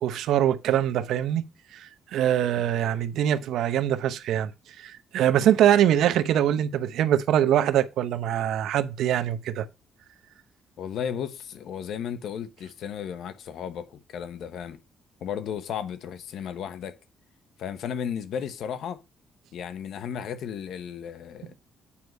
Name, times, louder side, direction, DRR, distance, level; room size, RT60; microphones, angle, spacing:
voice 1, 0.0-1.4 1.7-4.5 4.8-9.7, right 11 dB, 80° right, 0.8 m, -23 dB
voice 2, 10.8-14.8 15.2-17.0 17.6-19.0 19.5-21.7, left 8 dB, 75° left, 1.0 m, -34 dB
8.6 x 4.7 x 5.3 m
cardioid pair, 90°, 0 cm